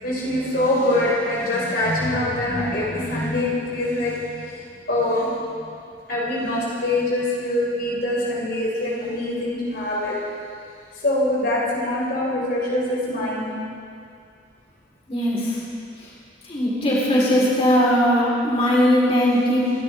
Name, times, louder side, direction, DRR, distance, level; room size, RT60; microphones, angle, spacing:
voice 1, 0.0-4.6 4.9-5.3 6.1-10.1 11.0-13.5, left 1 dB, 55° left, -5 dB, 3.7 m, -24 dB
voice 2, 15.1-15.6 16.5-19.7, equal, 35° left, -6 dB, 3.8 m, -19 dB
29.0 x 12.5 x 3.5 m, 2.3 s
head